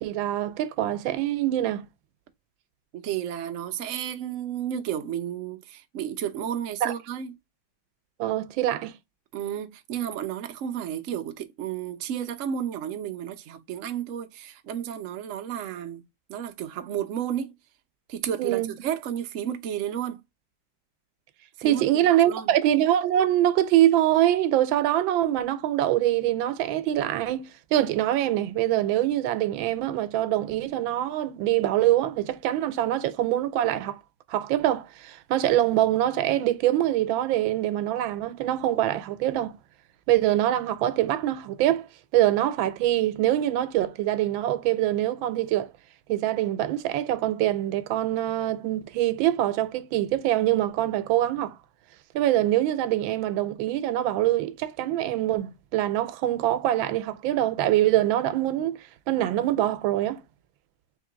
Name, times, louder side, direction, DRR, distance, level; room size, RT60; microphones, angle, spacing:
voice 1, 0.0-1.9 6.8-6.9 8.2-8.9 18.4-18.7 21.6-34.0 34.3-39.6 40.1-41.9 42.1-45.7 46.1-51.6 52.1-60.2, right 13 dB, 85° right, 1.4 m, -24 dB
voice 2, 2.9-7.3 9.3-16.0 16.3-17.5 18.1-20.2 21.6-22.5, right 9 dB, 70° right, 0.7 m, -32 dB
3.7 x 3.0 x 3.7 m
omnidirectional pair, 2.1 m